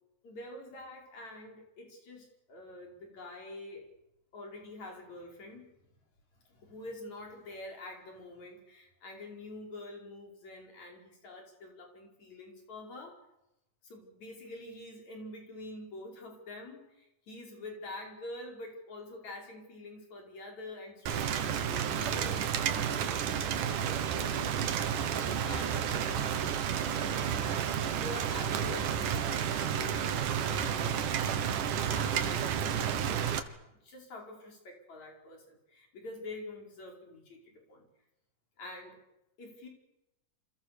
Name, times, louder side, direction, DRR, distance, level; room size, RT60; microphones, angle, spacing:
voice 1, 0.2-3.9 4.3-5.7 6.4-13.2 13.8-22.5 22.8-23.4 23.9-24.7 25.3-33.3 33.6-37.4 37.7-37.9 38.6-39.0 39.4-39.7, left 2 dB, 60° left, 2 dB, 6.3 m, -47 dB
Rain, 21.1-33.4, right 8 dB, 75° right, 3.1 m, -31 dB
28.5 x 27.0 x 6.8 m, 0.89 s
omnidirectional pair, 3.7 m